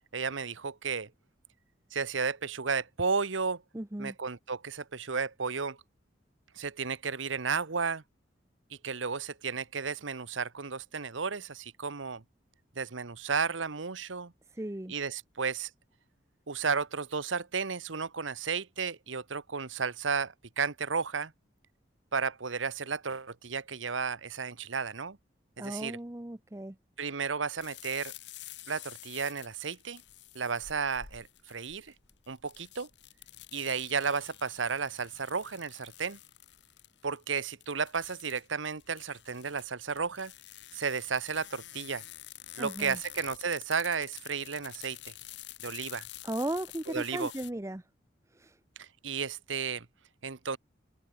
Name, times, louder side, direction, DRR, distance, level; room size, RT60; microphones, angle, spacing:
voice 1, 0.1-1.1 1.9-3.6 4.0-5.8 6.6-8.0 8.8-12.2 12.8-14.3 14.9-15.7 16.5-21.3 22.1-25.2 25.6-26.0 27.0-28.1 28.7-30.0 30.3-31.9 32.3-32.9 33.5-36.2 37.0-40.3 40.7-42.0 42.6-45.1 45.6-46.0 46.9-47.3 48.8-49.9 50.2-50.6, right 5 dB, 85° right, 1.2 m, -33 dB
voice 2, 3.7-4.1 14.5-14.9 25.6-26.8 42.6-43.0 46.2-47.9 48.3-48.6, right 1 dB, 15° right, 0.7 m, -36 dB
sound 1, 27.6-47.5, left 14 dB, 65° left, 1.2 m, -49 dB
head